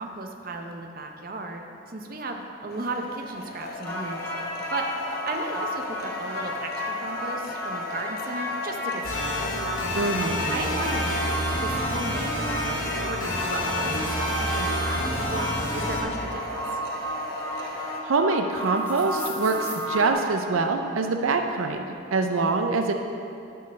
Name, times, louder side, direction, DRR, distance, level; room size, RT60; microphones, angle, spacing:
voice 1, 0.0-4.3 4.7-4.9 5.3-9.4 10.5-15.5 15.7-16.6, right 2 dB, 45° right, 3 dB, 0.7 m, -35 dB
sound 1, 2.7-18.0, left 2 dB, 45° left, 1.0 m, -37 dB
sound 2, 3.8-20.1, equal, 10° left, 0.7 m, -33 dB
sound 3, 9.0-16.0, left 1 dB, 90° left, 1.9 m, -29 dB
voice 2, 9.9-10.4 17.6-21.8 22.1-22.9, right 3 dB, 85° right, 5 dB, 0.5 m, -25 dB
11.5 x 4.7 x 6.4 m, 2.7 s
head